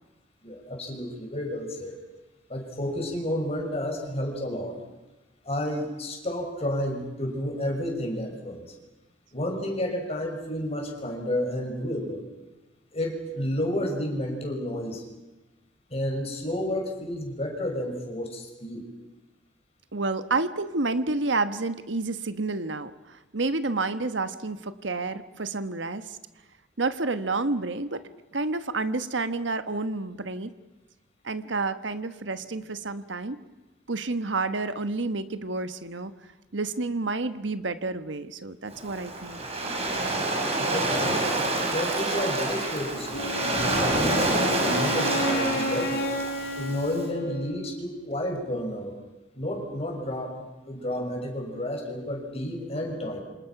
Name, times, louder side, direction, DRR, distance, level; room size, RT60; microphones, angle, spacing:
voice 1, 0.4-1.9 2.5-4.8 5.5-8.7 9.3-12.2 12.9-15.0 15.9-18.8 40.1-41.1 41.7-43.4 43.9-46.1 46.6-49.0 49.3-53.2, left 1 dB, 35° left, 2 dB, 6.2 m, -31 dB
voice 2, 19.9-26.2 26.8-30.5 31.2-33.4 33.9-36.1 36.5-39.4, right 3 dB, 85° right, 10 dB, 1.3 m, -29 dB
Waves surf, 38.7-46.9, right 2 dB, 35° right, 5.5 m, -27 dB
Wind instrument woodwind instrument, 43.1-47.9, left 1 dB, 65° left, 3.4 m, -32 dB
28.5 x 26.5 x 6.0 m, 1.1 s
head